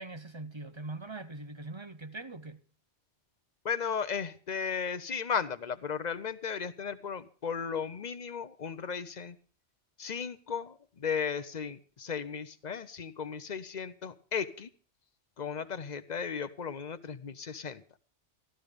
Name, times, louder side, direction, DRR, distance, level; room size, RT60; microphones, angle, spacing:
voice 1, 0.0-2.6, right 2 dB, 30° right, 0.7 m, -42 dB
voice 2, 3.6-9.4 10.0-14.7 15.4-17.8, left 6 dB, 40° left, 0.9 m, -35 dB
14.0 x 13.0 x 5.1 m
omnidirectional pair, 1.2 m